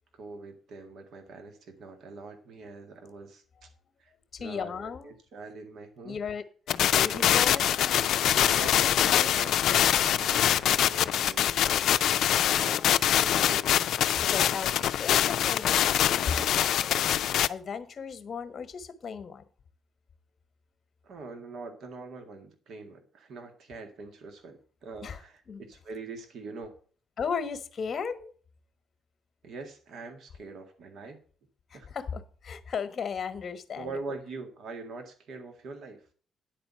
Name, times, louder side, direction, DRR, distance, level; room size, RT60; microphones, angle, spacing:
voice 1, 0.1-3.7 4.0-4.1 4.4-6.2 6.8-7.4 8.3-10.5 10.8-11.9 12.4-13.7 14.1-14.2 21.0-26.7 29.4-31.2 31.7-31.9 33.7-36.1, right 3 dB, 65° right, 5 dB, 1.9 m, -43 dB
voice 2, 4.3-5.1 6.0-8.2 8.8-8.9 9.1-9.4 12.5-13.1 14.2-17.0 17.5-19.4 25.0-25.2 25.5-25.6 27.2-28.3 31.7-34.2, left 6 dB, 50° left, 10 dB, 1.2 m, -36 dB
sound 1, 6.7-17.5, left 11 dB, 75° left, 0.4 m, -24 dB
10.0 x 4.3 x 7.5 m, 0.42 s
cardioid pair, 90°, 0 cm